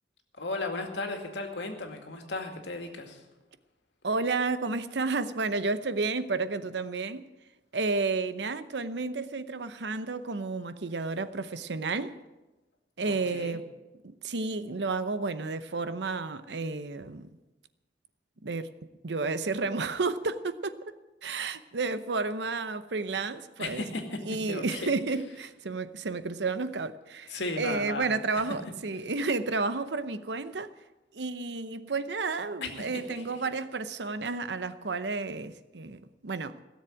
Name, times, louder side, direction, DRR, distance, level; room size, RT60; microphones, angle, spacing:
voice 1, 0.4-3.2 13.0-13.6 23.6-24.2 24.5-24.9 27.3-28.1 32.6-33.4, left 2 dB, 80° left, 2.2 m, -35 dB
voice 2, 4.0-7.3 7.7-12.2 13.0-13.6 14.0-17.3 18.4-18.7 19.0-20.8 21.2-23.8 24.3-30.7 31.1-36.6, right 3 dB, 70° right, 0.8 m, -31 dB
17.0 x 7.3 x 9.0 m
head